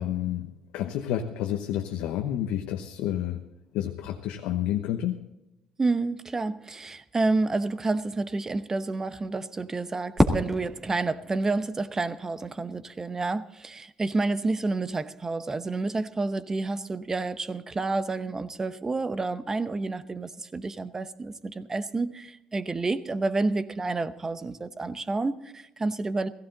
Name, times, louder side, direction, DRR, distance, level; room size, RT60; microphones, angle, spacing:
voice 1, 0.0-3.4 3.7-5.3, left 11 dB, 90° left, 4 dB, 1.0 m, -30 dB
voice 2, 5.8-26.3, right 3 dB, 25° right, 13 dB, 0.8 m, -29 dB
Fireworks, 10.2-12.4, equal, 10° right, 1.9 m, -28 dB
16.5 x 15.0 x 3.9 m, 0.94 s
cardioid pair, 100°, 2 cm